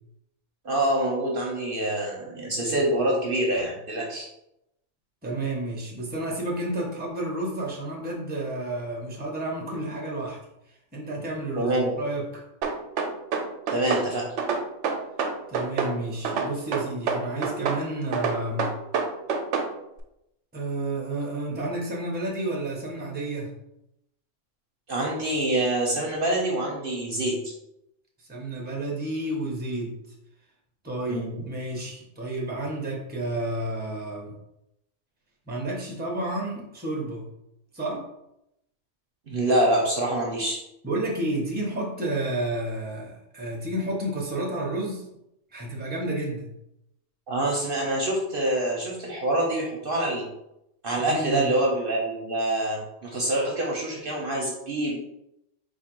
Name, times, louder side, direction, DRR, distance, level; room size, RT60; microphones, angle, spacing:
voice 1, 0.6-4.3 11.6-11.9 13.7-14.3 24.9-27.5 31.1-31.3 39.3-40.6 47.3-50.3 50.8-55.0, right 1 dB, 50° right, -2 dB, 0.9 m, -26 dB
voice 2, 5.2-10.4 10.9-12.4 15.5-18.8 20.5-23.5 28.3-30.0 30.8-34.3 35.5-37.3 37.7-38.1 40.8-45.0 45.5-46.5 51.0-51.5, right 1 dB, 10° right, -2 dB, 0.8 m, -31 dB
sound 1, 12.6-14.1 14.4-15.9 16.2-17.8 18.1-19.7, right 5 dB, 75° right, 0.9 m, -26 dB
3.7 x 2.6 x 4.4 m, 0.84 s
omnidirectional pair, 1.3 m